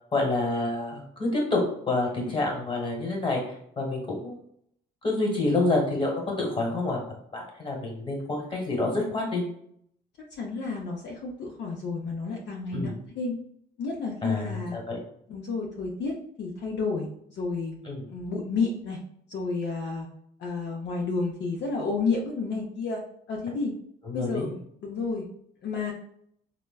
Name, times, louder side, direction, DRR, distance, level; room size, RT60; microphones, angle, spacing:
voice 1, 0.1-4.4 5.0-7.1 7.3-9.4 12.7-12.9 14.2-15.0 17.8-18.0 24.0-24.5, left 2 dB, 25° left, 0 dB, 1.2 m, -28 dB
voice 2, 10.4-13.4 13.8-14.8 15.3-16.1 16.4-17.8 18.1-19.0 19.3-20.1 20.4-23.0 23.3-23.7 24.1-24.6 24.8-25.2 25.6-25.9, left 4 dB, 70° left, -2 dB, 0.5 m, -31 dB
3.4 x 2.1 x 2.3 m, 0.68 s
cardioid pair, 70°, 19 cm